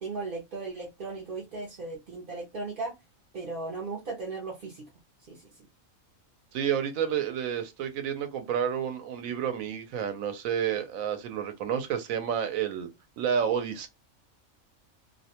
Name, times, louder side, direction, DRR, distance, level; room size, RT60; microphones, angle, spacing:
voice 1, 0.0-2.9 3.3-4.9 5.3-5.5, right 3 dB, 55° right, 0.6 m, -36 dB
voice 2, 6.5-12.9 13.2-13.9, right 8 dB, 75° right, 1.0 m, -30 dB
2.5 x 2.1 x 2.8 m
omnidirectional pair, 1.4 m